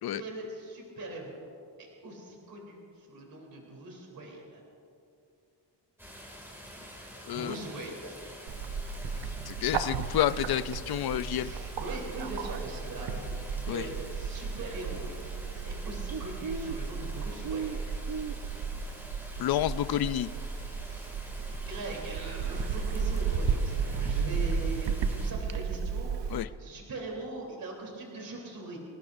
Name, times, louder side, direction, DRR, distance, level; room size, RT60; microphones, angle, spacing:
voice 1, 0.2-4.6 7.1-8.1 11.2-13.4 13.7-15.2 15.7-17.9 20.9-28.8, right 2 dB, 50° right, -1 dB, 3.5 m, -41 dB
sound 1, 6.0-25.3, equal, 5° right, 2.5 m, -47 dB
Bird, 8.5-26.4, right 6 dB, 70° right, 0.9 m, -34 dB
voice 2, 9.5-11.5 13.7-13.9 19.4-20.3 26.3-26.5, left 12 dB, 55° left, 15 dB, 0.5 m, -29 dB
26.0 x 19.0 x 2.6 m, 2.5 s
wide cardioid pair, 175°, 45 cm